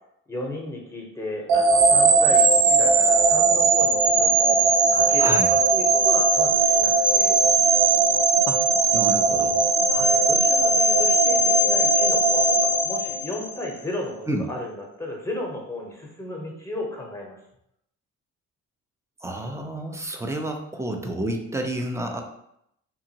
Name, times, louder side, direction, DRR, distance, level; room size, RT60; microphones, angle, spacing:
voice 1, 0.3-7.4 9.9-17.4, left 1 dB, 10° left, -1 dB, 0.8 m, -34 dB
sound 1, 1.5-13.6, right 3 dB, 85° right, 0.5 m, -19 dB
voice 2, 5.2-5.5 8.5-8.6 8.9-9.6 14.3-14.4 19.2-22.2, right 1 dB, 10° right, 3 dB, 0.4 m, -29 dB
2.8 x 2.5 x 2.8 m, 0.76 s
cardioid pair, 90°, 30 cm